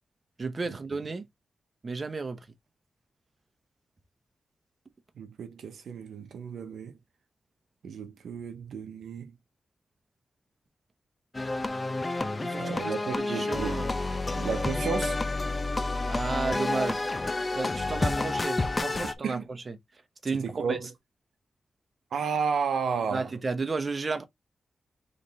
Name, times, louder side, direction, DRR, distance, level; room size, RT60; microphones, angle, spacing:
voice 1, 0.4-1.2 1.8-2.4 12.4-13.9 16.1-17.0 17.5-19.7 20.2-20.8 23.1-24.2, right 4 dB, 40° right, 1.0 m, -33 dB
voice 2, 5.2-7.0 7.8-9.3 12.5-13.8 14.3-15.2 19.2-19.5 20.4-20.9 22.1-23.3, right 6 dB, 90° right, 0.8 m, -32 dB
sound 1, 11.3-19.1, left 2 dB, 30° left, 0.7 m, -29 dB
4.0 x 3.3 x 4.0 m
cardioid pair, 75°, 0 cm